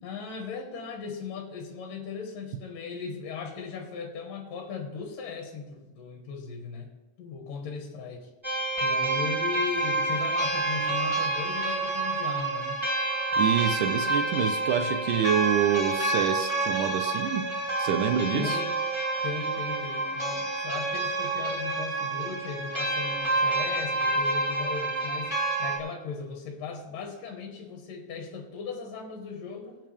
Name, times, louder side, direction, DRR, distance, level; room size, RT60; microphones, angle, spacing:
voice 1, 0.0-8.3 8.8-12.8 18.3-18.8 19.2-25.3 25.6-29.8, left 5 dB, 65° left, 2 dB, 3.1 m, -37 dB
sound 1, 8.4-25.8, right 2 dB, 10° right, 1.8 m, -28 dB
voice 2, 13.4-17.5 17.8-18.6, right 8 dB, 75° right, 7 dB, 2.0 m, -27 dB
23.0 x 8.9 x 3.5 m, 1.2 s
omnidirectional pair, 4.5 m